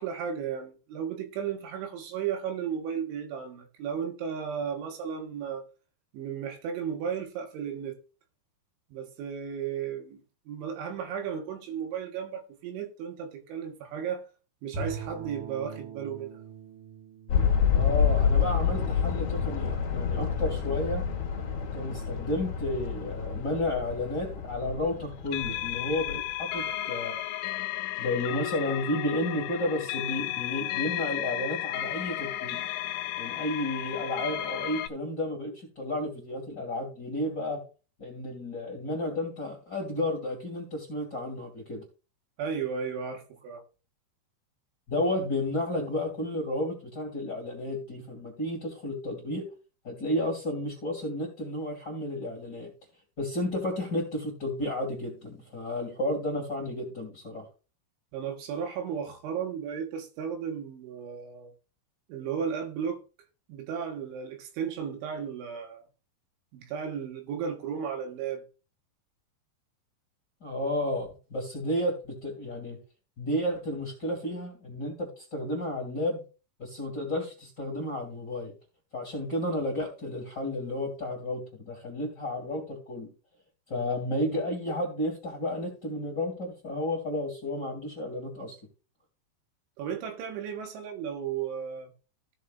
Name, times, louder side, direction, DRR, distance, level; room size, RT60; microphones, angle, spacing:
voice 1, 0.0-5.6 6.1-8.0 8.9-10.2 10.5-14.3 14.6-16.3 42.4-43.6 58.1-61.5 62.1-63.0 63.5-65.8 66.5-68.4 89.8-91.9, right 7 dB, 80° right, 3.7 m, -34 dB
Bowed string instrument, 14.7-19.0, right 4 dB, 50° right, 4.8 m, -42 dB
sound 1, 17.3-26.3, left 7 dB, 60° left, 2.0 m, -28 dB
voice 2, 17.7-21.0 21.7-27.2 28.0-32.6 33.2-37.6 38.0-41.8 44.9-49.4 49.8-52.7 53.2-57.4 70.4-72.8 73.2-76.2 76.6-78.5 78.9-83.1 83.7-88.6, left 1 dB, 30° left, 2.1 m, -32 dB
sound 2, 25.3-34.9, left 14 dB, 85° left, 3.0 m, -33 dB
16.0 x 5.5 x 2.5 m
omnidirectional pair, 5.5 m